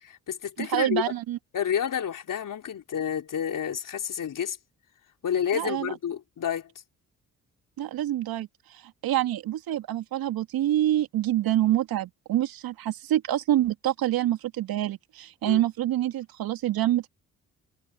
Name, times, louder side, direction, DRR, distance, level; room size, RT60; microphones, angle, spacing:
voice 1, 0.0-1.1 1.5-4.6 5.2-6.7 15.4-15.6, left 8 dB, 60° left, 4.4 m, -30 dB
voice 2, 0.6-1.4 5.5-5.9 7.8-17.1, right 13 dB, 70° right, 2.4 m, -26 dB
hypercardioid pair, 50°, 37 cm